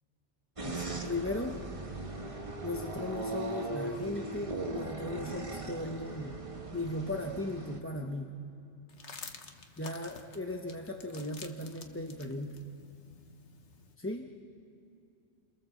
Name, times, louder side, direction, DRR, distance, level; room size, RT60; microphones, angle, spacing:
voice 1, 0.6-1.6 2.6-6.4 6.7-8.4 9.8-12.6 14.0-14.3, left 1 dB, 10° left, 2 dB, 0.9 m, -37 dB
sound 1, 0.6-7.8, right 2 dB, 25° right, 1.5 m, -39 dB
sound 2, 8.9-13.9, left 5 dB, 70° left, 1.6 m, -50 dB
29.0 x 23.0 x 7.3 m, 2.6 s
omnidirectional pair, 1.2 m